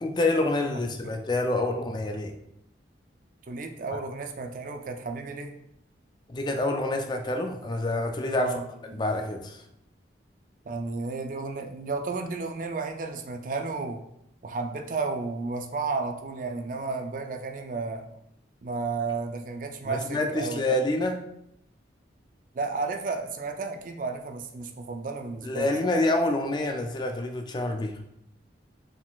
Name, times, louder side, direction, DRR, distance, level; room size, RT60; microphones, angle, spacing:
voice 1, 0.0-2.3 6.3-8.5 8.9-9.6 19.9-21.2 25.4-27.9, left 2 dB, 25° left, 5 dB, 0.3 m, -27 dB
voice 2, 3.5-5.5 8.3-9.0 10.7-14.0 14.4-18.1 18.6-20.8 22.5-25.9, right 4 dB, 45° right, 5 dB, 0.4 m, -33 dB
4.7 x 3.7 x 2.4 m, 0.77 s
head